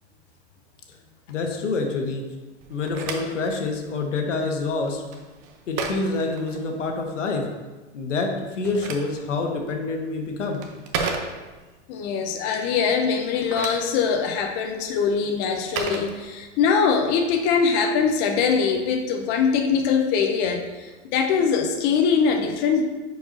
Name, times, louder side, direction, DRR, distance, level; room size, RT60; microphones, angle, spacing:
voice 1, 1.3-2.2 2.7-5.0 5.7-7.5 7.9-10.6, left 3 dB, 90° left, 2 dB, 1.4 m, -27 dB
Telephone, 2.6-7.1 8.4-11.8 13.2-16.8, right 4 dB, 35° right, 0.8 m, -35 dB
voice 2, 11.9-22.8, left 6 dB, 30° left, 3 dB, 0.6 m, -22 dB
10.0 x 4.7 x 2.7 m, 1.2 s
hypercardioid pair, 145°, 36 cm